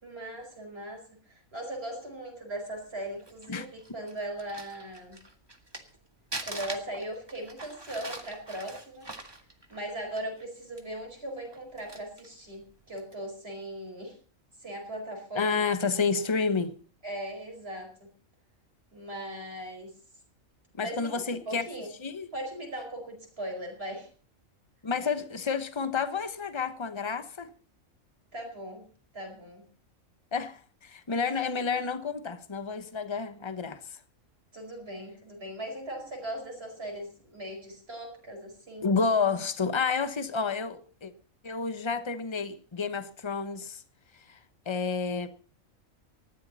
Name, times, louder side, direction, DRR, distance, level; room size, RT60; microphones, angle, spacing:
voice 1, 0.0-5.2 6.4-9.1 9.7-14.2 14.6-15.6 17.0-18.0 18.9-19.9 20.8-21.9 22.3-24.1 28.3-28.9 29.1-29.6 31.2-31.6 34.5-38.9, right 1 dB, 45° right, 5.3 m, -39 dB
Crumpling crinkling, 3.0-6.0 6.3-10.4 10.8-10.9 11.4-12.3 12.9-13.1, right 2 dB, 20° right, 1.8 m, -42 dB
voice 2, 15.3-16.7 20.7-21.6 22.0-22.3 24.8-27.5 30.3-34.0 38.8-41.1 41.4-43.8 44.3-44.4 44.7-45.3, left 5 dB, 20° left, 1.0 m, -30 dB
19.5 x 14.0 x 4.2 m
omnidirectional pair, 1.4 m